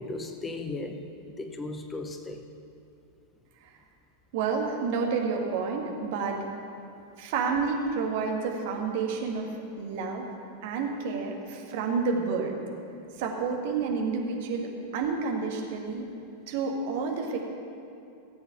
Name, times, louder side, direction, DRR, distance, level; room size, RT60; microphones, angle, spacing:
voice 1, 0.0-2.4, left 2 dB, 15° left, 6 dB, 0.8 m, -36 dB
voice 2, 4.3-6.4 7.2-10.3 10.6-12.6 13.2-16.1 16.5-17.4, right 5 dB, 50° right, 1 dB, 1.7 m, -29 dB
16.5 x 7.9 x 5.9 m, 2.7 s
figure-of-eight pair, 90°, 0 cm